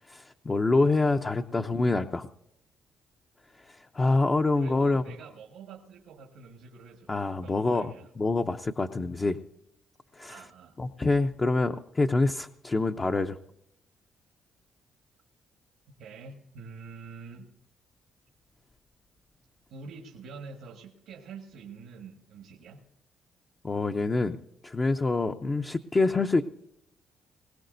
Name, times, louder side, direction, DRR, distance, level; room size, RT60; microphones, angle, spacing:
voice 1, 0.1-2.3 3.6-5.0 7.1-9.4 10.1-10.4 10.8-13.4 23.6-24.4 24.6-26.4, left 3 dB, 30° left, 5 dB, 0.6 m, -26 dB
voice 2, 4.6-7.1 7.4-8.1 10.3-10.8 16.0-17.5 19.7-22.8, right 5 dB, 90° right, 3 dB, 1.5 m, -46 dB
21.0 x 18.0 x 2.6 m, 0.78 s
cardioid pair, 90°, 0 cm